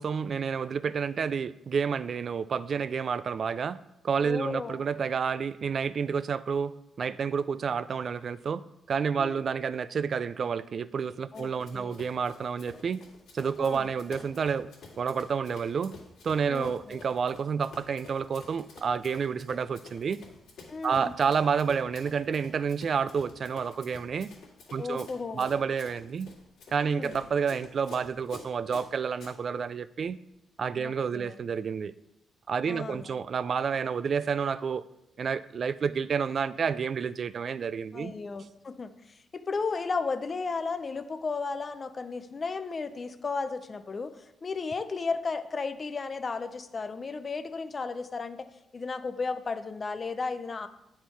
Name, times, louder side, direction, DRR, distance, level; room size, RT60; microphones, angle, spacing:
voice 1, 0.0-3.8 4.0-13.0 13.3-14.7 15.0-16.0 16.2-20.2 20.8-24.3 24.7-25.1 25.3-26.3 26.7-30.2 30.6-31.9 32.5-34.8 35.2-38.1, right 6 dB, 50° right, 16 dB, 0.3 m, -29 dB
voice 2, 4.2-4.8 9.2-9.4 11.3-12.0 13.6-13.9 16.5-17.0 20.7-21.1 24.8-25.5 26.8-27.2 30.7-31.4 32.7-33.1 37.9-48.5 48.7-50.7, left 4 dB, 35° left, 10 dB, 0.5 m, -34 dB
Run, 11.3-29.4, left 4 dB, 80° left, 2.2 m, -50 dB
9.3 x 4.3 x 4.6 m, 0.87 s
cardioid pair, 105°, 0 cm